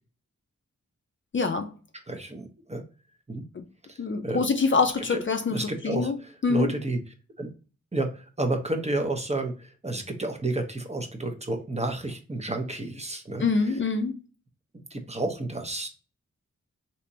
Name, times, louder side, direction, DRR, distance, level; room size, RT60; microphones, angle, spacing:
voice 1, 1.3-1.7 3.5-3.7 4.0-6.2 6.4-6.7 13.4-14.2, left 4 dB, 40° left, 0.5 m, -25 dB
voice 2, 2.1-2.8 3.3-3.4 3.9-4.0 4.2-4.4 5.1-5.2 5.5-6.1 6.5-7.0 7.4-7.5 7.9-13.4 14.7-15.9, right 2 dB, 25° right, 0.8 m, -30 dB
3.3 x 2.9 x 2.7 m
wide cardioid pair, 65°, 29 cm